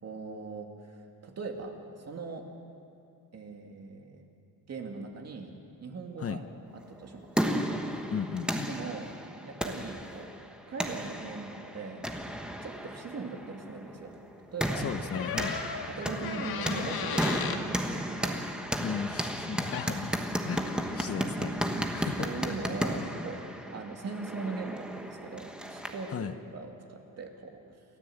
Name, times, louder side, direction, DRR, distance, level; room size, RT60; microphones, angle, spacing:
voice 1, 0.0-2.5 3.3-4.2 4.7-6.4 6.7-7.4 8.7-9.1 9.4-10.3 10.7-12.1 12.6-14.1 14.5-14.9 15.9-18.5 21.7-23.4 23.7-27.8, right 4 dB, 45° right, 2 dB, 2.4 m, -40 dB
sound 1, 6.9-26.1, equal, ahead, 1.2 m, -34 dB
voice 2, 8.1-8.7 14.8-15.6 18.8-20.2 20.4-20.6 20.9-21.5 21.9-22.3 26.1-26.3, left 7 dB, 40° left, 9 dB, 0.8 m, -35 dB
sound 2, 15.1-17.6 19.7-19.9, left 7 dB, 85° left, 1.7 m, -35 dB
29.0 x 13.5 x 7.8 m, 2.5 s
cardioid pair, 150°, 36 cm